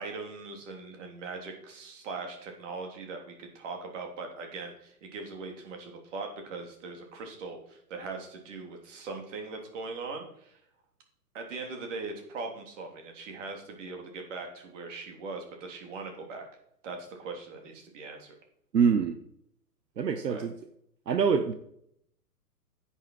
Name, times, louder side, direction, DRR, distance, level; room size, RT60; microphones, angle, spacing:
voice 1, 0.0-10.6 11.3-16.5 16.8-18.4 20.3-20.5, right 4 dB, 50° right, 3 dB, 3.3 m, -40 dB
voice 2, 18.7-19.2 20.0-20.5 21.1-21.5, right 6 dB, 80° right, 8 dB, 1.1 m, -25 dB
9.9 x 8.8 x 4.7 m, 0.73 s
hypercardioid pair, 130°, 48 cm